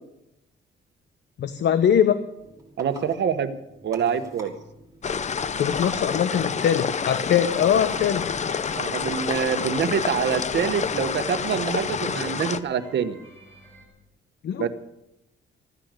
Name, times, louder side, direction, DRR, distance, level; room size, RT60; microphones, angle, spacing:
voice 1, 1.4-2.2 5.6-8.3 14.4-14.7, left 9 dB, 65° left, 11 dB, 0.9 m, -22 dB
sound 1, 2.4-9.5, right 2 dB, 15° right, 5.6 m, -47 dB
voice 2, 2.8-3.5 3.8-4.5 8.7-13.2 14.6-14.7, right 7 dB, 65° right, 9 dB, 1.3 m, -25 dB
sound 2, 5.0-12.6, left 6 dB, 35° left, 0.7 m, -28 dB
sound 3, 7.7-13.9, equal, 15° left, 7.1 m, -49 dB
16.0 x 9.9 x 8.3 m, 0.87 s
cardioid pair, 115°, 20 cm